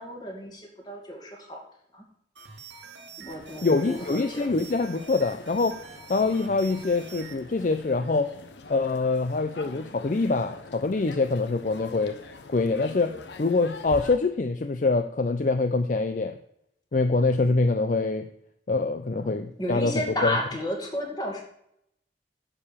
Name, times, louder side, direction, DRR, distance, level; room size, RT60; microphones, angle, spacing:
voice 1, 0.0-1.6 1.9-2.0 3.2-4.5 19.1-21.4, left 1 dB, 25° left, 0 dB, 2.2 m, -33 dB
sound 1, 2.3-7.4, right 6 dB, 90° right, 1.6 m, -46 dB
sound 2, 3.3-14.2, left 3 dB, 80° left, 1.0 m, -45 dB
voice 2, 3.6-5.7 6.1-8.3 8.7-12.1 12.5-13.1 13.4-16.4 16.9-18.3 18.7-19.9 20.2-20.3, left 3 dB, 45° left, 8 dB, 0.5 m, -24 dB
9.7 x 4.8 x 7.2 m, 0.74 s
head